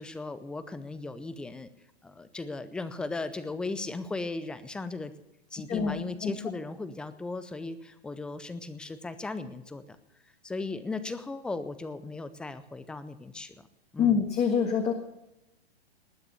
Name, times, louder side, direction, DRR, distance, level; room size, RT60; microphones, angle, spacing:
voice 1, 0.0-1.7 2.0-5.1 5.5-10.0 10.4-13.7 13.9-14.2, left 3 dB, 5° left, 13 dB, 0.4 m, -37 dB
voice 2, 14.0-14.9, left 7 dB, 20° left, 3 dB, 1.7 m, -25 dB
19.5 x 6.7 x 8.3 m, 0.90 s
hypercardioid pair, 150°, 30 cm